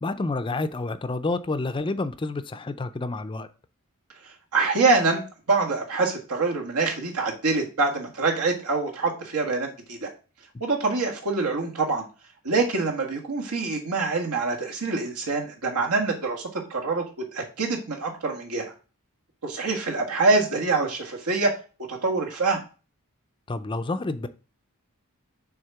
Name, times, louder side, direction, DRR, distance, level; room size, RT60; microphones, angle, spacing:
voice 1, 0.0-3.5 23.5-24.3, left 3 dB, 20° left, 0.4 m, -29 dB
voice 2, 4.2-5.2 5.5-10.1 10.6-12.0 12.4-17.0 17.3-18.7 19.4-21.5 21.9-22.6, right 3 dB, 85° right, 1.7 m, -25 dB
6.4 x 3.7 x 5.8 m
head